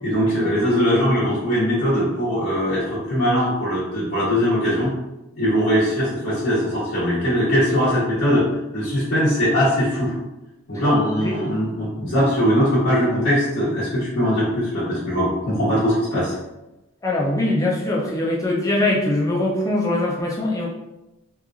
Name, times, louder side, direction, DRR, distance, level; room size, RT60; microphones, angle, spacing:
voice 1, 0.0-4.9 5.4-8.5 8.7-10.1 10.7-16.3, equal, 75° left, -13 dB, 1.1 m, -20 dB
voice 2, 17.0-20.7, left 1 dB, 15° left, -3 dB, 0.4 m, -22 dB
2.9 x 2.4 x 2.3 m, 0.95 s
head